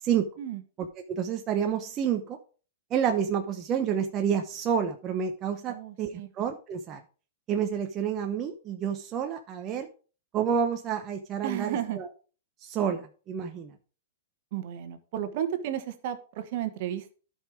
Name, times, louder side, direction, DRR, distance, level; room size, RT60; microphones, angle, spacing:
voice 1, 0.8-2.4 2.9-7.0 7.5-9.9 10.3-12.0 12.6-13.8, right 8 dB, 30° right, 4 dB, 0.9 m, -29 dB
voice 2, 5.7-6.3 11.4-12.0 14.5-17.1, right 10 dB, 55° right, 10 dB, 1.5 m, -33 dB
11.0 x 5.6 x 4.9 m, 0.37 s
hypercardioid pair, 130°, 0 cm